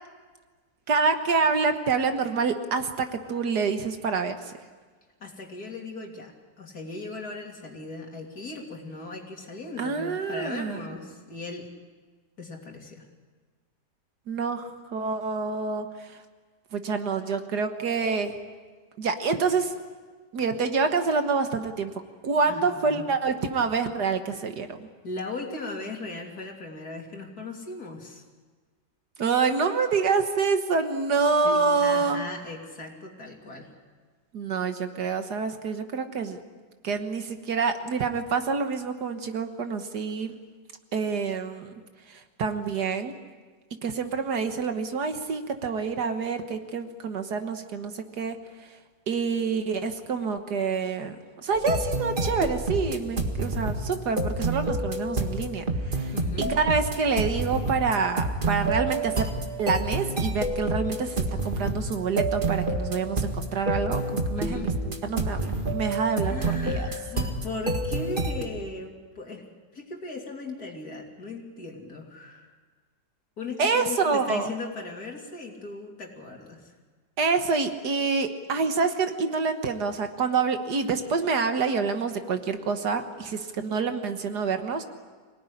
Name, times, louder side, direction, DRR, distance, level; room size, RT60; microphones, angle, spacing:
voice 1, 0.9-4.5 9.8-10.9 14.3-16.1 16.7-18.3 19.0-19.7 20.3-21.9 22.2-24.8 29.2-32.2 34.3-36.4 36.8-40.4 40.9-41.7 42.1-43.1 43.8-48.4 49.1-51.2 51.4-56.1 56.5-59.3 59.6-66.4 66.6-66.9 73.6-74.5 77.2-84.8, right 5 dB, 65° right, 7 dB, 1.9 m, -27 dB
voice 2, 5.2-11.7 12.4-13.1 22.5-23.0 25.0-28.2 31.2-33.7 56.1-56.6 64.3-64.8 66.2-69.4 69.7-72.5 73.4-76.8, left 3 dB, 60° left, 1 dB, 3.5 m, -38 dB
sound 1, 51.5-68.4, right 2 dB, 30° right, 2.0 m, -29 dB
25.5 x 18.0 x 9.9 m, 1.4 s
omnidirectional pair, 1.9 m